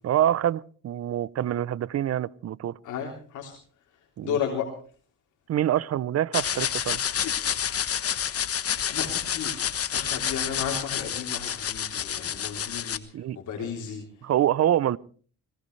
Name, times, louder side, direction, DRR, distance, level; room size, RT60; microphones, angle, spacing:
voice 1, 0.0-2.7 4.2-4.4 5.5-7.0 13.1-13.7 14.2-15.0, right 11 dB, 55° right, 22 dB, 0.7 m, -26 dB
voice 2, 2.8-3.5 4.2-4.7 8.9-13.0 13.4-14.0, left 7 dB, 75° left, 0 dB, 3.5 m, -33 dB
sound 1, 6.3-13.0, left 9 dB, 50° left, 1.3 m, -29 dB
21.0 x 19.5 x 3.3 m, 0.42 s
cardioid pair, 90°, 30 cm